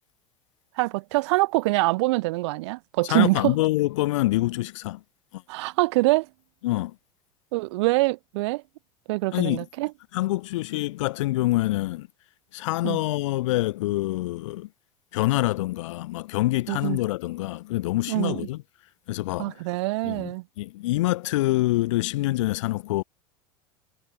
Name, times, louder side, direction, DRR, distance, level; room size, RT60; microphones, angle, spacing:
voice 1, 0.8-3.6 5.5-6.3 7.5-8.6 9.1-9.9 12.8-13.0 16.7-17.0 18.1-18.4 19.4-20.4, right 22 dB, 55° right, 0.4 m, -24 dB
voice 2, 3.1-5.0 5.3-5.4 6.6-6.9 9.3-9.6 10.1-12.1 12.5-14.7 15.1-18.6 19.1-19.5 20.0-23.0, left 18 dB, 60° left, 0.8 m, -26 dB
figure-of-eight pair, 80°, 18 cm